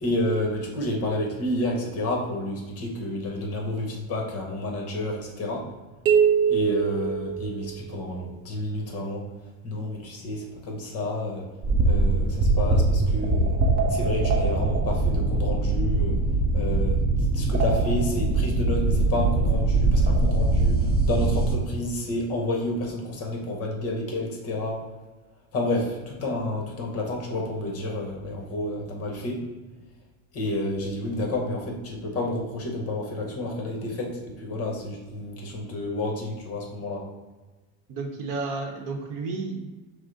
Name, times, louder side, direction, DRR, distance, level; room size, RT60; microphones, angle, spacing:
voice 1, 0.0-5.6 6.5-9.2 9.6-11.4 11.8-13.6 13.9-16.2 16.5-17.0 17.3-24.8 25.5-29.4 30.3-37.0, left 1 dB, 35° left, 0 dB, 1.0 m, -30 dB
sound 1, 6.1-8.0, right 7 dB, 80° right, 0.8 m, -23 dB
sound 2, 11.6-21.6, right 2 dB, 25° right, 0.4 m, -22 dB
voice 2, 37.9-39.6, right 3 dB, 50° right, 2 dB, 0.8 m, -31 dB
6.0 x 2.0 x 3.9 m, 1.2 s
supercardioid pair, 140°, 42 cm